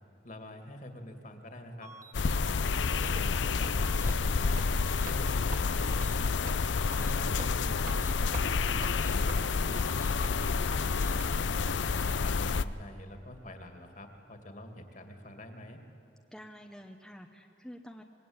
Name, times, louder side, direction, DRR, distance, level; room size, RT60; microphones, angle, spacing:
voice 1, 0.2-1.9 2.4-4.6 5.1-6.5 7.1-9.9 10.3-15.8, left 1 dB, 45° left, 5 dB, 2.5 m, -46 dB
sound 1, 1.8-2.1 2.8-3.1 3.8-4.1 4.8-5.1 5.8-6.1 6.8-7.1 7.8-8.1 8.8-9.1 9.8-10.1 10.8-11.1, right 2 dB, 15° right, 1.2 m, -49 dB
sound 2, 2.1-12.6, left 4 dB, 80° left, 0.6 m, -29 dB
sound 3, 3.1-3.3 3.6-3.8 4.1-4.2 4.5-4.7 5.1-5.2 5.5-5.7 6.0-6.1 6.5-6.6 6.9-7.1 7.4-7.5 7.9-8.0 8.3-8.5 8.8-8.9 9.3-9.4 9.8-9.9 10.2-10.4 10.7-10.8 11.2-11.3 11.7-11.8 12.1-12.2, right 3 dB, 45° right, 2.0 m, -45 dB
voice 2, 16.3-18.0, equal, 5° left, 2 dB, 1.0 m, -48 dB
26.0 x 21.0 x 8.9 m, 2.7 s
head